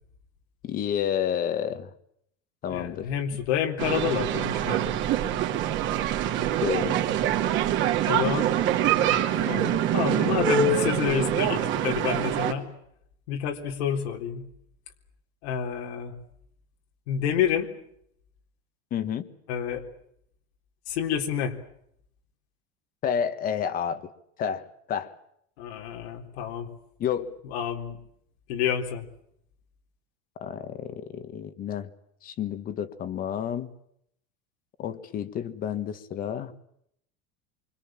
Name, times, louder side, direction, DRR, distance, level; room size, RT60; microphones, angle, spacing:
voice 1, 0.6-1.9 2.6-3.1 6.6-7.0 18.9-19.3 23.0-24.1 24.4-25.1 27.0-27.4 30.4-31.9 32.2-33.7 34.8-36.5, left 9 dB, 25° left, 1.5 m, -30 dB
voice 2, 2.7-4.9 8.1-8.5 9.4-12.7 13.3-14.4 15.4-16.1 17.1-17.7 19.5-19.8 20.9-21.5 25.6-26.7 27.4-28.0 28.5-29.1, left 9 dB, 85° left, 3.9 m, -29 dB
sound 1, 3.8-12.5, right 9 dB, 35° right, 2.5 m, -25 dB
27.5 x 25.0 x 7.5 m
cardioid pair, 175°, 32 cm